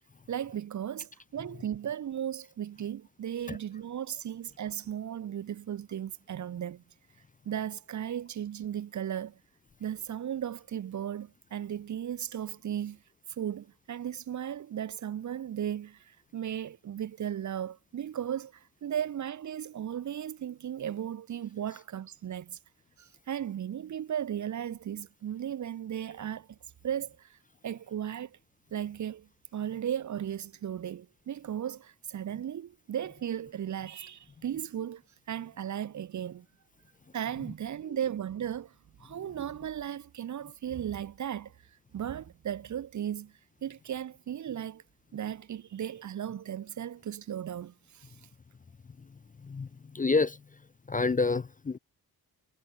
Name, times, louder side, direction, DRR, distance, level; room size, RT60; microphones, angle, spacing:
voice 1, 0.3-6.8 7.4-9.4 9.8-13.0 13.3-22.6 23.0-26.6 26.8-27.4 27.6-28.4 28.7-35.0 35.3-36.5 37.1-38.7 39.0-41.5 41.9-43.3 43.6-44.8 45.1-48.1, right 10 dB, 50° right, 0.6 m, -36 dB
voice 2, 49.0-50.6 50.9-51.8, left 4 dB, 20° left, 0.4 m, -30 dB
wide cardioid pair, 115°, 38 cm